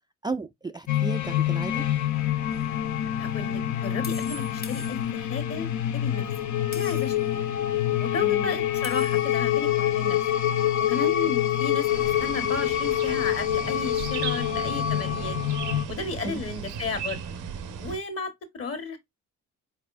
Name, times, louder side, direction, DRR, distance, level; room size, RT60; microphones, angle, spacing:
voice 1, 0.2-1.8 8.2-8.5 16.2-16.4, right 3 dB, 15° right, 0.3 m, -33 dB
sound 1, 0.9-15.9, left 11 dB, 70° left, 0.8 m, -26 dB
sound 2, 2.5-2.7 4.0-5.5 6.7-7.3 8.8-9.5, left 3 dB, 30° left, 1.1 m, -43 dB
voice 2, 3.2-6.2 6.7-7.4 8.0-10.2 10.8-11.9 12.2-15.4 15.9-17.2 17.8-19.0, left 4 dB, 50° left, 1.5 m, -33 dB
sound 3, 11.9-18.0, right 8 dB, 85° right, 0.9 m, -36 dB
4.6 x 4.0 x 2.5 m
cardioid pair, 90°, 30 cm